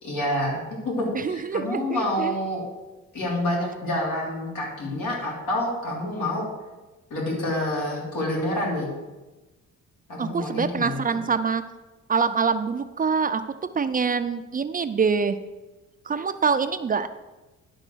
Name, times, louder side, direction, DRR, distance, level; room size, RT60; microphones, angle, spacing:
voice 1, 0.0-0.6 0.8-2.6 3.1-6.4 7.1-8.9 10.1-11.2, left 1 dB, 80° left, -3 dB, 3.3 m, -28 dB
voice 2, 1.1-2.4 10.2-11.6 12.1-13.4 13.8-15.4 16.1-17.1, right 5 dB, 30° right, 10 dB, 0.4 m, -25 dB
11.0 x 3.8 x 6.2 m, 1.1 s
cardioid pair, 90°, 30 cm